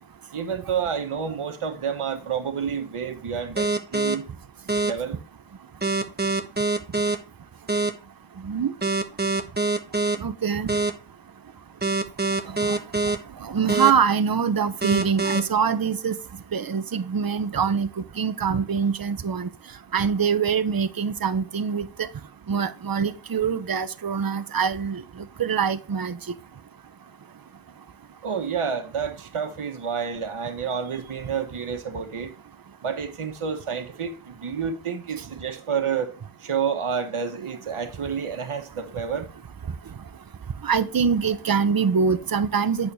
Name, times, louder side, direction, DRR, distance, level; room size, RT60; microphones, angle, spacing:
voice 1, 0.3-4.2 4.8-5.2 28.2-32.3 32.8-36.1 36.4-39.3, right 6 dB, 85° right, 1.4 m, -29 dB
sound 1, 3.6-4.1 4.7-4.9 5.8-7.2 7.7-7.9 8.8-10.2 10.7-10.9 11.8-13.2 13.7-13.9 14.8-15.4, right 3 dB, 20° right, 1.1 m, -24 dB
voice 2, 10.2-10.7 12.7-12.8 13.4-16.2 16.5-17.9 18.2-19.5 19.9-22.1 22.5-25.0 25.4-26.1 40.6-42.9, right 6 dB, 45° right, 0.8 m, -24 dB
8.5 x 6.6 x 3.5 m
wide cardioid pair, 60°, 49 cm